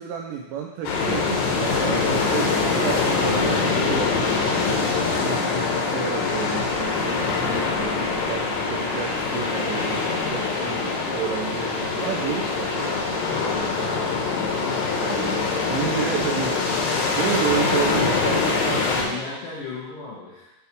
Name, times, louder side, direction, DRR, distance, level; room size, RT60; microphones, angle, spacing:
voice 1, 0.0-4.9 5.2-13.1 14.9-16.6 17.2-19.3, right 9 dB, 80° right, 1 dB, 2.6 m, -31 dB
sound 1, 0.8-19.0, left 4 dB, 90° left, 3.8 m, -24 dB
voice 2, 9.5-9.8 13.1-13.7 14.0-14.9 18.6-20.5, left 4 dB, 60° left, -8 dB, 2.8 m, -36 dB
9.6 x 6.8 x 3.4 m, 0.97 s
omnidirectional pair, 5.4 m